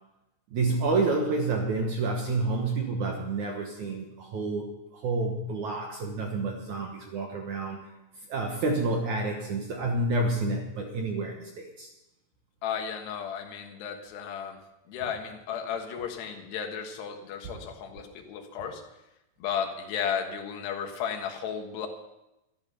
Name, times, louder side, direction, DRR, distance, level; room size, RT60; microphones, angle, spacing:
voice 1, 0.5-7.8 8.3-11.9, right 3 dB, 70° right, 2 dB, 1.8 m, -29 dB
voice 2, 12.6-14.6 14.9-18.8 19.4-21.9, left 7 dB, 70° left, 4 dB, 3.5 m, -34 dB
13.5 x 11.0 x 6.9 m, 0.94 s
omnidirectional pair, 5.3 m